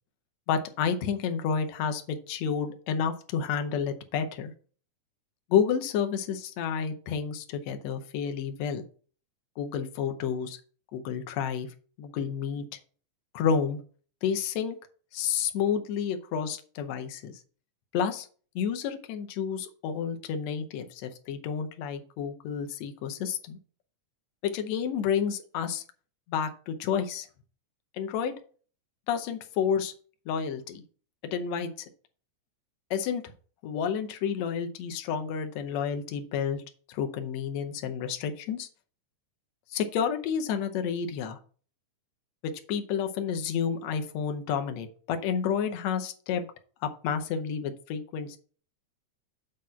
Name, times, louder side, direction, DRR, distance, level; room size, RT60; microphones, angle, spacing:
voice 1, 0.5-4.5 5.5-8.8 9.6-10.6 10.9-11.7 12.0-12.7 13.3-13.8 14.2-14.8 15.1-17.4 17.9-18.3 18.6-23.6 24.4-25.8 26.3-27.3 27.9-28.3 29.1-29.9 30.3-30.8 31.3-31.7 32.9-33.2 33.6-36.6 36.9-38.7 39.7-41.4 42.4-46.5 46.8-48.4, left 7 dB, 70° left, 6 dB, 1.9 m, -30 dB
7.6 x 4.0 x 5.6 m, 0.42 s
omnidirectional pair, 3.4 m